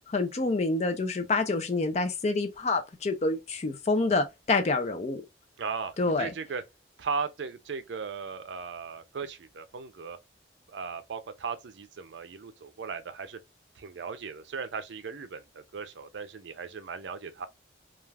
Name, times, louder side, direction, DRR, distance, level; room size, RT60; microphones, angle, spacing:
voice 1, 0.1-5.2 6.0-6.3, left 3 dB, 35° left, 0.4 m, -27 dB
voice 2, 5.6-6.6 7.0-10.2 10.7-13.4 13.8-17.5, right 5 dB, 70° right, 0.5 m, -37 dB
2.4 x 2.2 x 3.3 m
head